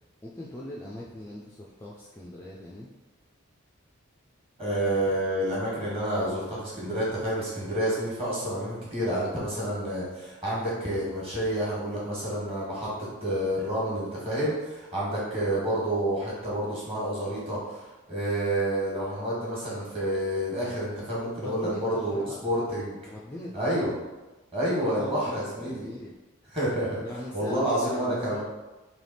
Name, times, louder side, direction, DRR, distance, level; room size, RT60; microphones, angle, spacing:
voice 1, 0.2-2.9 21.4-22.5 23.0-23.7 24.8-26.1 27.0-28.4, left 1 dB, 10° left, -5 dB, 0.3 m, -40 dB
voice 2, 4.6-12.9 13.2-17.8 18.1-23.0 23.5-23.9 24.5-25.9 26.5-27.0 27.3-28.4, right 1 dB, 25° right, -6 dB, 1.4 m, -29 dB
3.3 x 2.9 x 4.1 m, 1.1 s
head